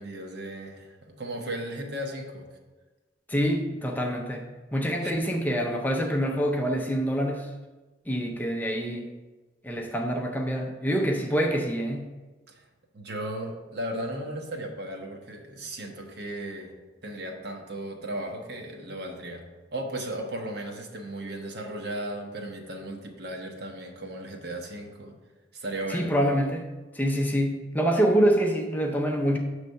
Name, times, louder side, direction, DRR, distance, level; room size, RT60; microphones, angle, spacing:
voice 1, 0.0-2.4 5.0-5.1 12.5-12.7 12.9-16.7 17.0-19.4 19.7-25.1 25.5-26.1, right 1 dB, 60° right, 2 dB, 0.9 m, -36 dB
voice 2, 3.3-4.5 4.7-7.5 8.1-9.1 9.6-12.1 25.9-29.4, equal, 10° left, 1 dB, 0.5 m, -26 dB
6.6 x 3.2 x 5.3 m, 1.2 s
head